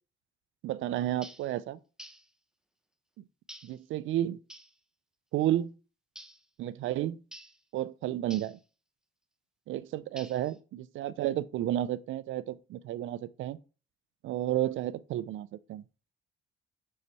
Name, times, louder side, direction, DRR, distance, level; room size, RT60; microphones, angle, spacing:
voice 1, 0.6-1.8 3.6-4.4 5.3-5.7 6.6-7.2 7.7-8.6 9.7-13.6 14.2-15.8, right 13 dB, 80° right, 0.5 m, -32 dB
sound 1, 1.2-1.5 2.0-2.3 3.5-3.8 4.5-4.8 6.1-6.4 7.3-7.6 8.3-8.6 10.2-10.6, right 1 dB, 5° right, 0.8 m, -49 dB
5.5 x 4.9 x 4.1 m
cardioid pair, 90°, 20 cm